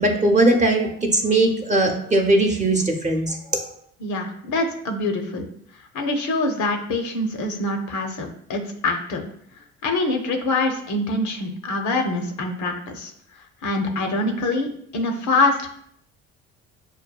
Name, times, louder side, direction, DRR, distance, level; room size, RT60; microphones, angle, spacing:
voice 1, 0.0-3.6, right 2 dB, 20° right, 2 dB, 0.8 m, -19 dB
voice 2, 4.0-5.5 5.9-9.3 9.8-13.1 13.6-14.7 14.9-15.6, left 2 dB, 55° left, 4 dB, 0.7 m, -24 dB
6.1 x 2.2 x 2.3 m, 0.67 s
supercardioid pair, 70°, 35 cm